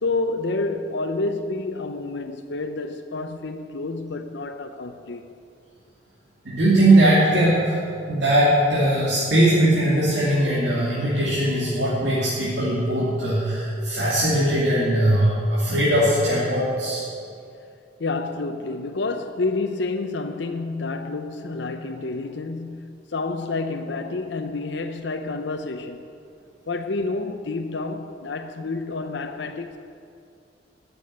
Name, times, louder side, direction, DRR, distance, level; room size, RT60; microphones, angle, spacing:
voice 1, 0.0-5.2 18.0-26.0 26.7-29.8, left 3 dB, 70° left, 0.6 m, -29 dB
voice 2, 6.4-7.7 8.1-17.0, right 1 dB, 70° right, 2.8 m, -20 dB
13.0 x 7.0 x 9.4 m
head